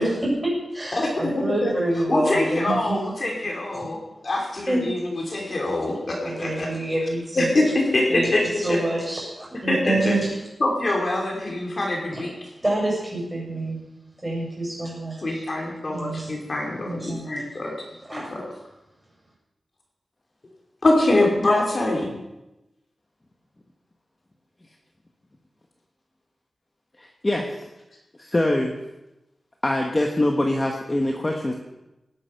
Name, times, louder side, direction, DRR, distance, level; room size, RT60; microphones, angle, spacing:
voice 1, 0.0-3.1 3.7-3.8 4.7-4.9 6.2-7.5 8.1-10.3 12.1-12.3 12.6-13.8 14.2-15.5 15.9-16.4 16.8-17.3 18.1-18.3, right 1 dB, 15° right, -4 dB, 7.2 m, -27 dB
voice 2, 0.9-1.7 2.1-6.7 7.4-8.8 9.6-10.2 10.6-12.3 15.2-17.7 18.1-18.4 20.8-22.1, left 2 dB, 40° left, 0 dB, 2.8 m, -24 dB
voice 3, 27.0-27.5 28.2-28.8 29.6-31.6, left 1 dB, 20° left, 1 dB, 1.3 m, -23 dB
18.5 x 10.0 x 5.7 m, 0.97 s
wide cardioid pair, 150°, 0 cm